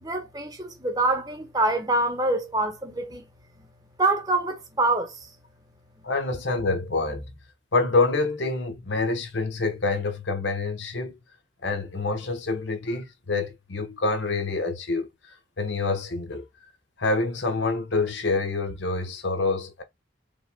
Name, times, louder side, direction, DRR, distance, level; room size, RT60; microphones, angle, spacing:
voice 1, 0.0-3.3 3.6-3.7 4.0-5.3, right 2 dB, 20° right, 1.1 m, -25 dB
voice 2, 6.0-7.3 7.7-11.1 11.6-15.1 15.6-16.5 17.0-19.8, left 3 dB, 75° left, 1.2 m, -26 dB
5.3 x 3.5 x 2.2 m
head